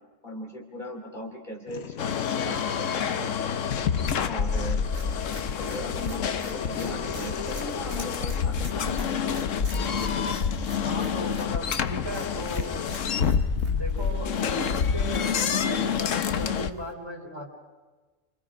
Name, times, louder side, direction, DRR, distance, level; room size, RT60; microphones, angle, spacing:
voice 1, 0.2-2.6 2.9-3.7 4.2-4.8 5.4-9.4, equal, 35° left, 1 dB, 3.2 m, -38 dB
sound 1, 1.7-3.0 3.5-5.1 6.2-7.7 8.6-8.7 9.0-11.3 11.8-11.9 12.2-13.3, left 7 dB, 55° left, 1.1 m, -42 dB
sound 2, 2.0-16.7, left 7 dB, 75° left, 1.3 m, -28 dB
sound 3, 4.9-16.9, right 1 dB, 55° right, 3.8 m, -45 dB
voice 2, 10.8-12.7 13.7-17.5, equal, 20° right, 0 dB, 4.1 m, -36 dB
29.0 x 25.5 x 5.1 m, 1.3 s
omnidirectional pair, 1.3 m